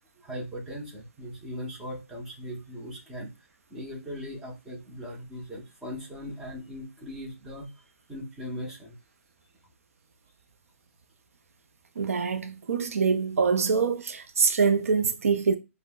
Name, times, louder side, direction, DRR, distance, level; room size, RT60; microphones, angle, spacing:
voice 1, 0.2-3.3 3.7-7.7 8.1-9.0, equal, 5° right, 0.7 m, -39 dB
voice 2, 12.0-15.6, right 5 dB, 75° right, 0.4 m, -24 dB
5.2 x 2.0 x 2.2 m
hypercardioid pair, 155°, 8 cm